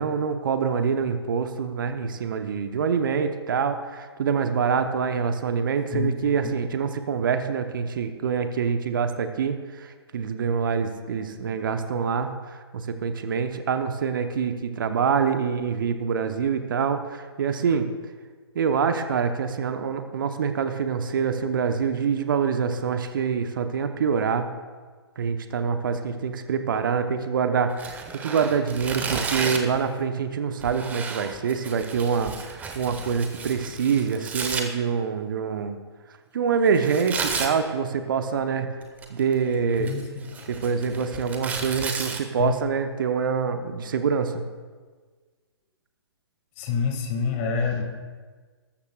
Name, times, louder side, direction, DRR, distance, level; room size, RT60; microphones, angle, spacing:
voice 1, 0.0-17.9 18.5-24.5 25.2-35.8 36.3-38.7 39.1-39.9 40.5-44.4, right 6 dB, 50° right, 8 dB, 0.9 m, -25 dB
Tearing, 27.7-29.8 30.6-34.6 36.7-37.5 38.8-39.3 39.7-42.2, right 5 dB, 10° right, 1.0 m, -33 dB
voice 2, 46.6-47.8, left 5 dB, 30° left, 3 dB, 2.0 m, -26 dB
20.0 x 13.0 x 2.4 m, 1.5 s
figure-of-eight pair, 125°, 14 cm